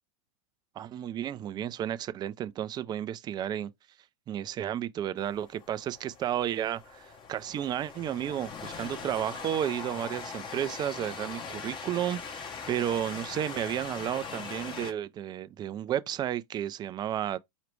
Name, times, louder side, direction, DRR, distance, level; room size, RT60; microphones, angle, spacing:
voice 1, 0.8-3.7 4.3-17.4, right 10 dB, 25° right, 0.4 m, -32 dB
Train, 5.2-14.9, left 5 dB, 25° left, 0.9 m, -41 dB
4.9 x 3.0 x 3.1 m
hypercardioid pair, 115°, 18 cm